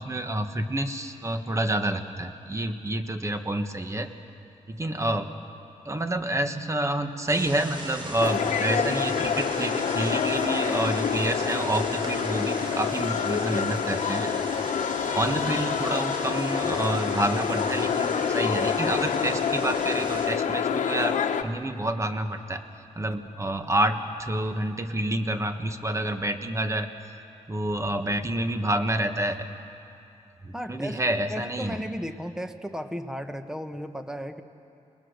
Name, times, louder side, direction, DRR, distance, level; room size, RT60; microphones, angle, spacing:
voice 1, 0.0-4.1 4.7-5.3 5.8-14.3 15.1-22.6 22.9-26.9 27.5-29.5 30.4-31.8, right 1 dB, 25° right, 7 dB, 1.5 m, -28 dB
sound 1, 7.3-20.3, right 1 dB, 40° right, 4.3 m, -38 dB
sound 2, 8.2-21.4, left 7 dB, 75° left, 1.0 m, -27 dB
voice 2, 30.5-34.4, equal, 5° right, 8 dB, 1.3 m, -35 dB
29.0 x 20.5 x 6.7 m, 2.6 s
cardioid pair, 90°, 13 cm